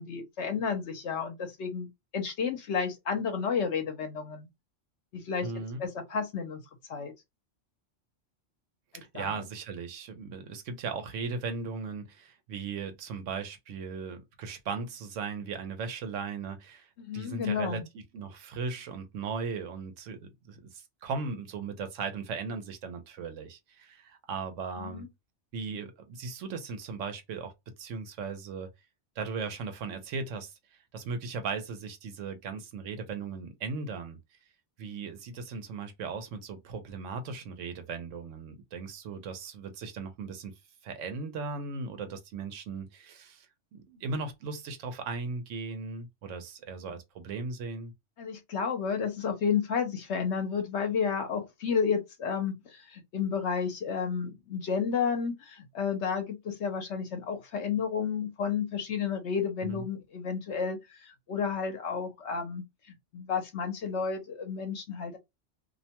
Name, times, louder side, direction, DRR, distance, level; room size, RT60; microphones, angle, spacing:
voice 1, 0.0-4.5 5.1-5.5 5.8-6.6 6.9-7.1 9.1-9.3 17.0-17.9 24.8-25.1 48.2-62.6 63.1-65.2, left 6 dB, 70° left, 0.9 m, -31 dB
voice 2, 5.4-5.8 8.9-25.1 25.5-27.5 27.8-28.7 29.2-30.5 30.9-34.2 34.8-40.5 40.8-43.5 43.7-47.9 59.6-59.8, right 4 dB, 90° right, 1.0 m, -37 dB
2.6 x 2.1 x 2.8 m
omnidirectional pair, 1.2 m